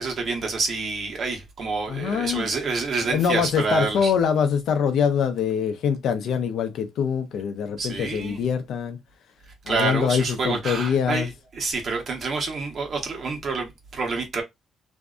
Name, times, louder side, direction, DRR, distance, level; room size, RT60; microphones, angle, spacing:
voice 1, 0.0-4.1 7.8-8.4 9.7-14.4, right 4 dB, 55° right, 1.0 m, -28 dB
voice 2, 1.9-2.5 3.1-9.0 9.7-11.3, left 7 dB, 75° left, 0.5 m, -24 dB
2.6 x 2.2 x 2.4 m
cardioid pair, 90°, 0 cm